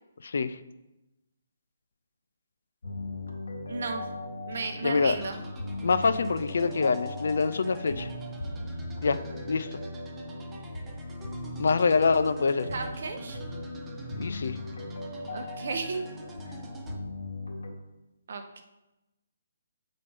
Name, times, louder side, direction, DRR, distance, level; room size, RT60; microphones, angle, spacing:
voice 1, 0.2-0.6 4.8-5.2 5.8-8.1 9.0-9.2 9.5-9.8 11.6-12.7 14.2-14.6, left 4 dB, 55° left, 12 dB, 0.4 m, -25 dB
sound 1, 2.8-17.7, left 2 dB, 75° left, 2.1 m, -38 dB
voice 2, 3.7-4.0 4.5-5.4 12.7-13.4 15.3-16.0 18.3-18.6, right 4 dB, 45° right, 5 dB, 0.9 m, -34 dB
sound 2, 5.0-17.0, right 4 dB, 5° right, 0.5 m, -50 dB
7.6 x 4.2 x 4.8 m, 0.99 s
hypercardioid pair, 180°, 0 cm